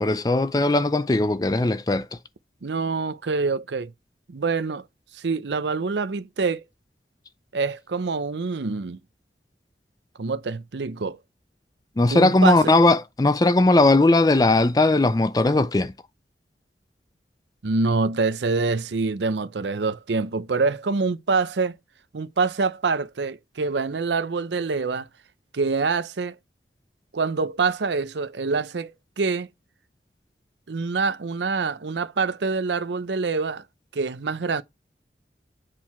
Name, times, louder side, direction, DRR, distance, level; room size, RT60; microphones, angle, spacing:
voice 1, 0.0-2.1 12.0-15.9, left 2 dB, 20° left, 0.4 m, -19 dB
voice 2, 2.6-3.9 4.3-4.8 5.1-6.6 7.5-9.0 10.2-11.2 12.1-12.6 17.6-21.8 22.1-25.1 25.5-26.3 27.1-28.9 29.2-29.5 30.7-33.6 33.9-34.6, right 4 dB, 85° right, 0.6 m, -25 dB
7.7 x 4.6 x 4.3 m
head